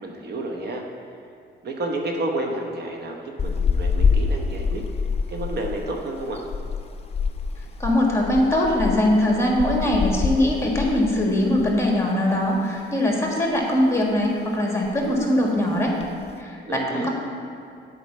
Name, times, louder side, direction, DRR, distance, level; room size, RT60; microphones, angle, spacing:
voice 1, 0.0-0.8 1.6-4.8 5.3-6.4 16.7-17.1, right 2 dB, 55° right, 1 dB, 1.0 m, -30 dB
sound 1, 3.4-11.9 12.2-12.4 12.8-13.6 13.9-14.3 14.6-14.7 14.8-15.3 15.8-16.3, left 5 dB, 30° left, 0.6 m, -26 dB
voice 2, 7.8-15.9 16.4-17.1, left 1 dB, 15° left, -1 dB, 1.6 m, -21 dB
8.3 x 4.8 x 5.5 m, 2.5 s
cardioid pair, 90°, 20 cm